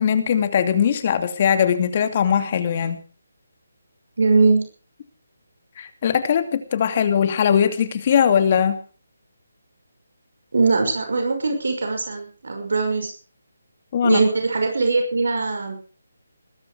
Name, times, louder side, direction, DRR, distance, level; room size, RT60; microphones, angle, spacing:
voice 1, 0.0-3.0 5.8-8.8 13.9-14.2, left 8 dB, 35° left, 9 dB, 2.6 m, -20 dB
voice 2, 4.2-4.7 10.5-13.1 14.0-15.8, right 3 dB, 70° right, 4 dB, 6.0 m, -21 dB
20.5 x 12.5 x 5.0 m, 0.39 s
figure-of-eight pair, 160°, 0 cm